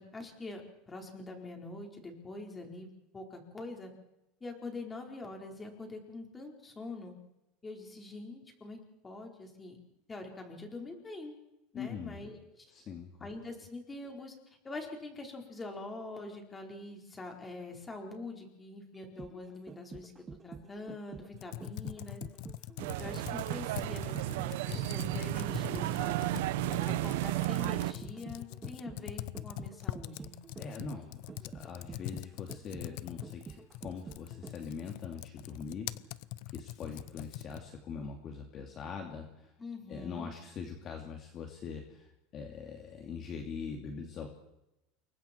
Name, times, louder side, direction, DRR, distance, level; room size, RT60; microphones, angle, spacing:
voice 1, 0.0-2.9 3.1-3.9 4.4-7.1 7.6-8.8 9.0-9.8 10.1-11.3 11.7-12.7 13.2-14.3 14.6-20.1 20.4-22.2 23.0-26.3 26.8-30.3 39.6-40.3, left 2 dB, 15° left, 2 dB, 4.6 m, -44 dB
voice 2, 11.7-12.2 12.7-13.3 30.6-35.9 36.5-39.5 39.9-44.4, left 6 dB, 35° left, 3 dB, 2.6 m, -42 dB
sound 1, 18.9-34.8 35.2-35.3, right 5 dB, 15° right, 0.8 m, -48 dB
Computer keyboard, 21.3-37.8, left 17 dB, 65° left, 0.7 m, -43 dB
sound 2, 22.8-27.9, right 17 dB, 80° right, 1.0 m, -33 dB
29.0 x 23.0 x 4.6 m, 0.89 s
supercardioid pair, 150°, 0 cm